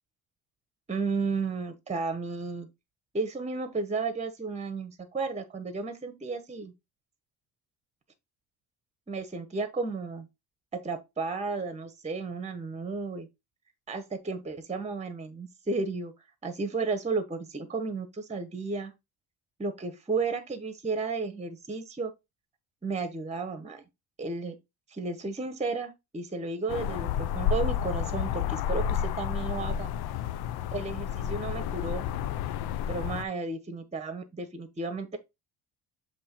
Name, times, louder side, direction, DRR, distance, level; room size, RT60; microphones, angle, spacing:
voice 1, 0.9-2.7 3.1-6.7 9.1-10.3 10.7-13.3 13.9-16.1 16.4-18.9 19.6-22.1 22.8-23.8 24.2-24.6 24.9-29.9 30.7-32.1 32.9-35.2, right 4 dB, 15° right, 1.1 m, -33 dB
sound 1, 26.7-33.2, left 9 dB, 70° left, 0.7 m, -31 dB
7.6 x 3.0 x 4.4 m
cardioid pair, 105°, 40 cm